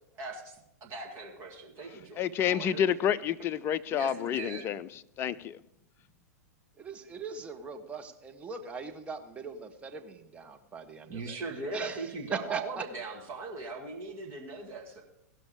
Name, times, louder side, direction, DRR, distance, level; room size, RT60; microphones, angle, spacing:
voice 1, 0.2-0.6 0.8-2.8 3.9-4.6 11.1-15.0, right 3 dB, 30° right, 2.2 m, -39 dB
voice 2, 2.2-4.9 5.2-5.6, left 9 dB, 25° left, 0.4 m, -29 dB
voice 3, 6.8-11.4 11.7-12.9, right 5 dB, 15° right, 1.1 m, -40 dB
17.0 x 6.0 x 4.9 m
figure-of-eight pair, 100°, 9 cm